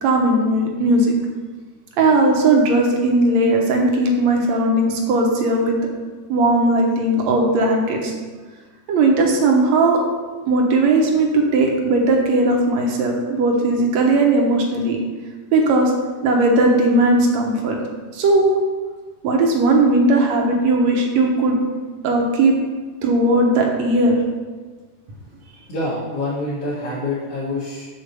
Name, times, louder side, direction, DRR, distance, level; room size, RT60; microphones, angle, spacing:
voice 1, 0.0-1.2 2.0-5.8 6.3-8.1 8.9-10.0 10.5-15.0 15.5-15.9 16.2-17.8 18.1-18.6 19.2-21.6 22.0-22.6 23.0-24.2, right 2 dB, 65° right, 1 dB, 2.0 m, -17 dB
voice 2, 25.7-27.9, left 2 dB, 50° left, -9 dB, 2.5 m, -26 dB
6.6 x 5.0 x 6.8 m, 1.4 s
omnidirectional pair, 3.7 m